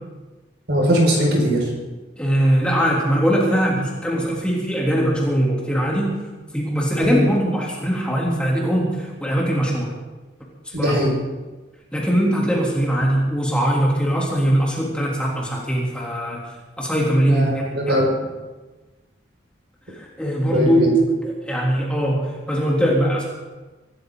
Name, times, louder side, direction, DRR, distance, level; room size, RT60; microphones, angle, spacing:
voice 1, 0.7-1.7 7.0-7.3 10.7-11.1 17.3-18.1 20.5-20.9, equal, 65° right, -1 dB, 5.6 m, -20 dB
voice 2, 2.2-6.2 6.5-9.9 10.6-11.0 11.9-16.4 16.8-18.0 19.9-20.9 21.2-23.2, equal, 5° left, -4 dB, 3.2 m, -21 dB
24.5 x 14.0 x 3.9 m, 1.2 s
head